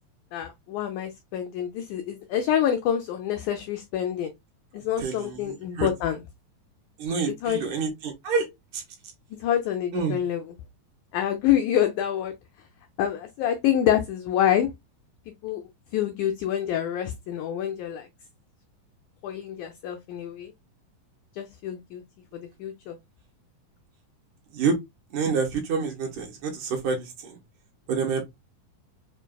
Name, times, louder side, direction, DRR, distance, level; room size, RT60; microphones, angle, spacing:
voice 1, 0.3-4.3 4.7-6.2 7.3-7.6 9.3-10.6 11.1-12.3 13.0-14.7 15.4-18.1 19.2-20.5 21.3-22.0 22.3-23.0, left 10 dB, 85° left, 1.7 m, -27 dB
voice 2, 5.0-5.9 7.0-8.5 8.7-8.8 9.9-10.2 24.5-24.8 25.1-27.4 27.9-28.3, right 5 dB, 70° right, 2.2 m, -28 dB
5.7 x 2.5 x 2.2 m
omnidirectional pair, 4.0 m